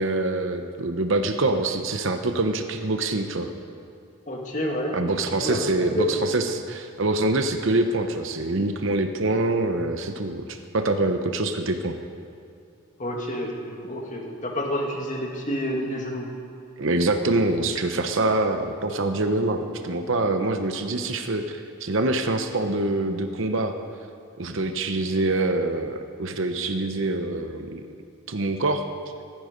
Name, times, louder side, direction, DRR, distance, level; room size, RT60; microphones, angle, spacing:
voice 1, 0.0-3.5 4.9-12.0 16.8-23.7 24.4-27.8 28.3-28.8, right 2 dB, 60° right, 6 dB, 0.8 m, -25 dB
voice 2, 4.3-6.1 13.0-16.3, left 1 dB, 35° left, 0 dB, 2.2 m, -29 dB
16.0 x 13.5 x 5.2 m, 2.6 s
head